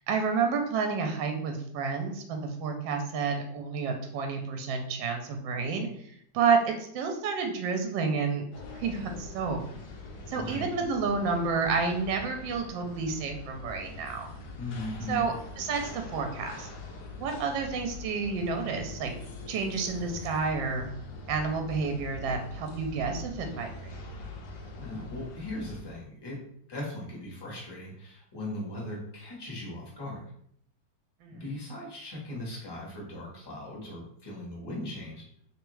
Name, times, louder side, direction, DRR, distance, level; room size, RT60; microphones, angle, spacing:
voice 1, 0.1-5.9 6.3-8.5 8.7-9.6 10.3-14.3 15.1-16.7 17.2-19.1 19.5-20.9 21.3-23.9 31.2-31.4, right 5 dB, 80° right, 4 dB, 1.3 m, -30 dB
sound 1, 8.5-25.8, left 3 dB, 70° left, 1.2 m, -43 dB
voice 2, 10.3-10.7 14.6-15.3 24.8-26.4 26.7-30.2 31.3-35.2, left 1 dB, 20° left, -4 dB, 0.8 m, -38 dB
3.5 x 3.3 x 3.1 m, 0.67 s
omnidirectional pair, 2.0 m